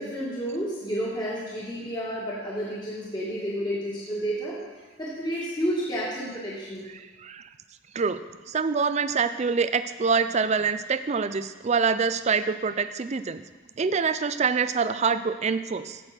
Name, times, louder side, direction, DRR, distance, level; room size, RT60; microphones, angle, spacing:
voice 1, 0.0-4.5 5.0-6.8, equal, 20° left, -7 dB, 2.0 m, -30 dB
voice 2, 8.5-13.4 13.8-16.0, right 5 dB, 30° right, 12 dB, 0.4 m, -25 dB
15.5 x 6.3 x 4.4 m, 1.3 s
head